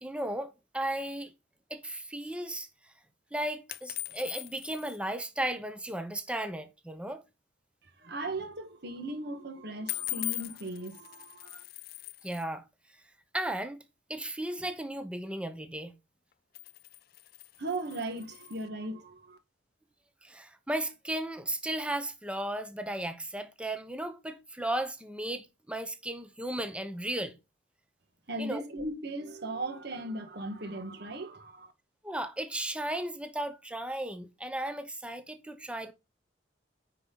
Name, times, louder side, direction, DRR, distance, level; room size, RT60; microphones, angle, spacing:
voice 1, 0.0-1.3 1.7-2.7 3.3-7.2 12.2-12.6 13.3-13.8 14.1-15.9 20.2-27.3 28.4-28.6 32.0-35.9, right 1 dB, 5° right, 0.8 m, -35 dB
sound 1, 3.7-5.0 9.9-12.4 16.3-18.7, left 18 dB, 50° left, 0.4 m, -40 dB
voice 2, 7.8-11.6 17.6-19.4 28.3-31.7, right 2 dB, 60° right, 1.7 m, -37 dB
9.8 x 4.6 x 3.9 m
head